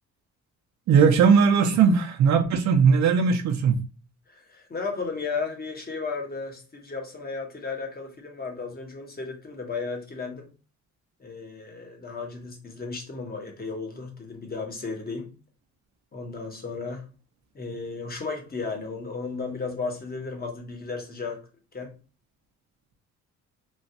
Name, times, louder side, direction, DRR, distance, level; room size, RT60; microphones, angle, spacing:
voice 1, 0.9-3.8, right 6 dB, 65° right, 0.7 m, -19 dB
voice 2, 4.3-10.5 11.2-15.3 16.1-17.1 17.5-21.4 21.7-21.9, left 4 dB, 30° left, 0.9 m, -34 dB
3.1 x 2.3 x 2.6 m
cardioid pair, 90°, 30 cm